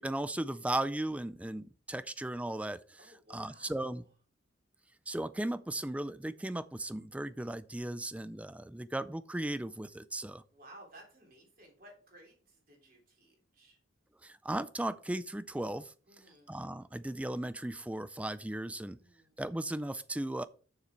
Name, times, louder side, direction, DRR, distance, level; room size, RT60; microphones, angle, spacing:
voice 1, 0.0-3.0 3.3-4.0 5.1-10.4 14.2-15.9 16.5-19.0 19.4-20.4, right 1 dB, 5° right, 0.3 m, -36 dB
voice 2, 3.0-4.1 10.5-13.8 16.1-16.6 18.9-19.4, right 1 dB, 45° right, 3.5 m, -57 dB
7.1 x 6.8 x 4.6 m
head